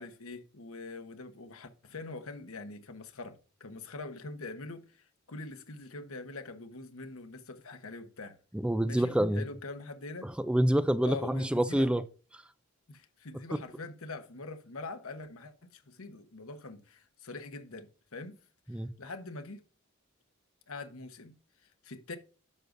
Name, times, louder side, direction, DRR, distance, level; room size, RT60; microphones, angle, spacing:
voice 1, 0.0-8.4 8.9-10.3 11.0-11.9 12.9-18.4 19.0-19.6 20.7-21.3 21.8-22.2, left 3 dB, 80° left, 1.1 m, -44 dB
voice 2, 8.5-9.5 10.2-12.0 12.3-12.4 18.7-18.9, right 1 dB, 5° right, 0.3 m, -27 dB
11.0 x 6.6 x 2.6 m
head